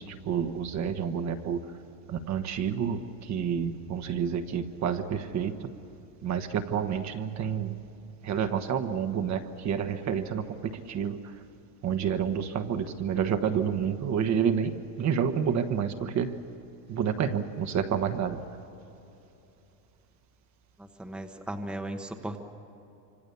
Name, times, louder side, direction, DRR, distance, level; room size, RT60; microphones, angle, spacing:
voice 1, 0.0-1.7 2.1-5.7 6.2-7.8 8.2-11.3 11.8-16.4 16.9-18.4, right 7 dB, 35° right, 7 dB, 1.3 m, -29 dB
voice 2, 20.8-22.4, right 1 dB, ahead, 4 dB, 1.1 m, -37 dB
27.0 x 26.0 x 6.9 m, 2.9 s
supercardioid pair, 140°, 46 cm